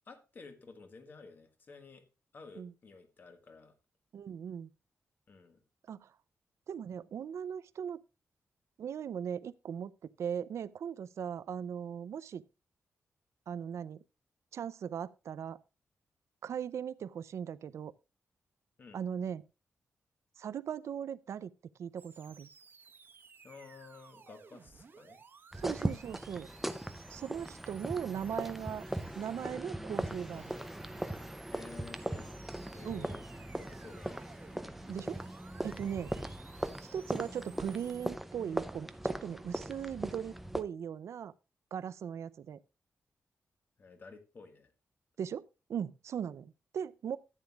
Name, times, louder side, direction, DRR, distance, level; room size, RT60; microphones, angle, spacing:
voice 1, 0.1-2.0 2.3-3.7 5.3-5.6 18.8-19.0 23.4-25.2 31.5-32.4 32.7-33.2 33.6-34.3 43.8-44.7, left 4 dB, 40° left, 1.6 m, -52 dB
voice 2, 4.1-4.7 5.9-6.1 6.7-8.0 8.8-9.9 10.2-12.4 13.5-14.0 14.5-15.6 16.4-17.9 18.9-19.4 20.4-21.5 21.8-22.5 25.6-26.5 27.1-28.8 29.2-30.6 32.8-33.1 34.9-35.2 35.6-36.1 36.9-41.3 41.7-42.6 45.2-47.2, right 8 dB, 70° right, 0.5 m, -39 dB
sound 1, 22.0-38.1, right 5 dB, 45° right, 1.3 m, -58 dB
sound 2, 25.5-40.6, right 1 dB, 5° right, 0.6 m, -39 dB
14.0 x 9.0 x 2.4 m
wide cardioid pair, 170°, 5 cm